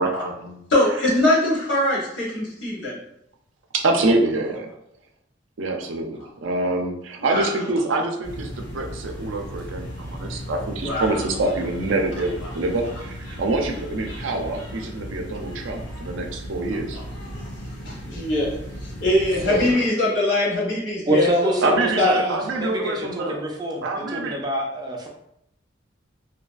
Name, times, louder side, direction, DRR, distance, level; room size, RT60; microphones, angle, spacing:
voice 1, 0.0-0.6 3.7-4.7 5.6-17.0 19.5-19.7 21.6-23.4 23.8-24.4, right 2 dB, 85° right, 3 dB, 0.4 m, -25 dB
voice 2, 0.7-3.0 7.2-7.5 10.8-11.2 16.9-17.0 17.8-18.6 19.0-21.6 22.0-22.2, left 1 dB, 70° left, -4 dB, 0.9 m, -22 dB
sound 1, 8.2-19.7, equal, 90° left, 1.2 m, -36 dB
voice 3, 21.1-25.1, right 1 dB, 20° right, 1 dB, 0.3 m, -26 dB
2.7 x 2.4 x 2.3 m, 0.77 s
head